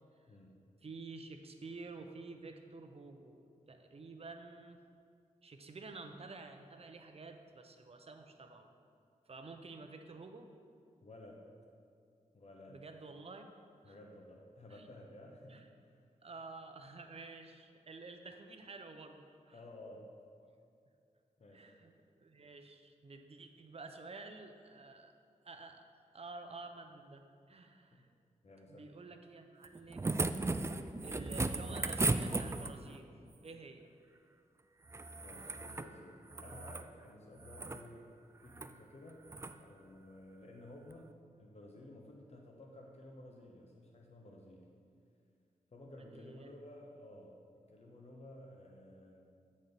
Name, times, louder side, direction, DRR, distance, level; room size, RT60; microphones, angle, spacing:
voice 1, 0.3-0.7 11.0-11.5 12.3-12.9 13.8-16.1 19.5-20.1 21.4-21.7 27.9-28.1 28.4-28.9 35.2-38.1 38.4-39.3 39.6-44.7 45.7-47.4 47.7-49.3, left 1 dB, 45° left, 0 dB, 0.9 m, -54 dB
voice 2, 0.8-4.8 5.4-8.7 9.3-10.5 12.7-13.5 13.9-14.0 14.7-14.9 15.5-15.7 16.2-19.6 21.5-25.1 25.4-25.9 26.1-28.1 28.7-30.3 31.0-33.1 33.4-33.9 46.1-46.5, right 3 dB, 45° right, 6 dB, 0.7 m, -50 dB
sound 1, 29.6-33.0 34.9-35.9 36.3-36.9 37.4-37.8 38.5-38.7 39.3-39.5 40.9-41.0, right 3 dB, 20° right, 0.3 m, -36 dB
7.6 x 4.2 x 5.2 m, 2.4 s
cardioid pair, 50°, 15 cm